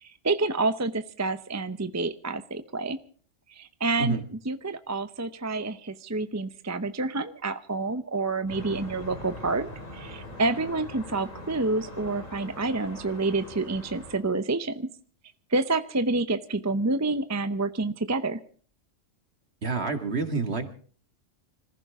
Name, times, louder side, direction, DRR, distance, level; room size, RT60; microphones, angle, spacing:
voice 1, 0.0-3.0 3.5-14.9 15.5-18.4, right 3 dB, 15° right, 11 dB, 0.6 m, -28 dB
sound 1, 8.5-14.2, left 1 dB, 85° left, 5.2 m, -42 dB
voice 2, 19.6-20.7, right 4 dB, 55° right, 7 dB, 2.2 m, -28 dB
25.5 x 15.0 x 3.6 m, 0.43 s
omnidirectional pair, 1.3 m